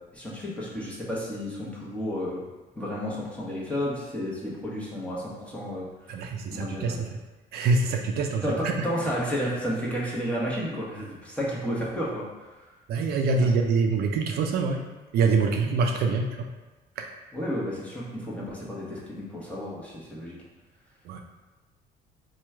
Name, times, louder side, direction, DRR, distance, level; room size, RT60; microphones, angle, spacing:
voice 1, 0.1-2.4 2.8-6.2 6.5-7.0 8.4-12.2 12.6-12.7 17.3-20.4, equal, 5° left, -6 dB, 1.0 m, -32 dB
voice 2, 6.1-7.1 7.5-8.7 12.9-14.8 15.1-16.5 17.0-17.1 21.1-21.2, right 4 dB, 70° right, 3 dB, 0.4 m, -25 dB
3.0 x 2.4 x 4.3 m, 1.2 s
cardioid pair, 110°, 17 cm